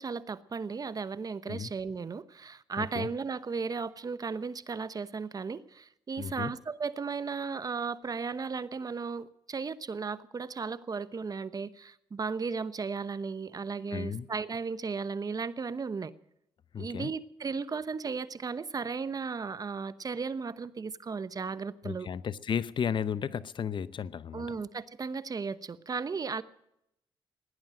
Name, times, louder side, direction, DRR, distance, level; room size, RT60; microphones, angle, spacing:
voice 1, 0.0-16.1 16.7-22.1 24.3-26.4, right 5 dB, 40° right, 0.9 m, -35 dB
voice 2, 2.8-3.1 6.2-6.5 13.9-14.3 16.7-17.1 21.8-24.5, left 7 dB, 55° left, 0.7 m, -34 dB
17.5 x 10.5 x 7.6 m
cardioid pair, 75°, 10 cm